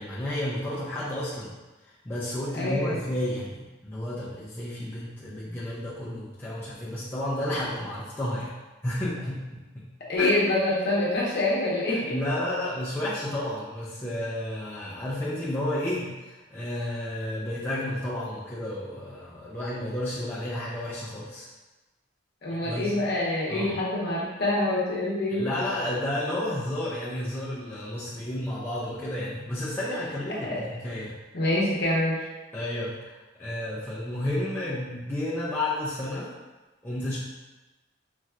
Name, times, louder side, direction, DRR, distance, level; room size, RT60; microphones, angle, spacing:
voice 1, 0.0-1.5 2.1-8.5 8.8-9.9 10.2-10.3 11.9-21.5 22.6-23.0 23.5-23.7 25.3-31.2 32.5-36.3 36.8-37.2, left 1 dB, 10° left, -8 dB, 0.4 m, -31 dB
voice 2, 2.5-3.1 10.1-12.2 22.4-25.5 30.4-30.6 31.3-32.2, left 1 dB, 55° left, -6 dB, 0.8 m, -26 dB
4.0 x 2.3 x 2.4 m, 1.1 s
head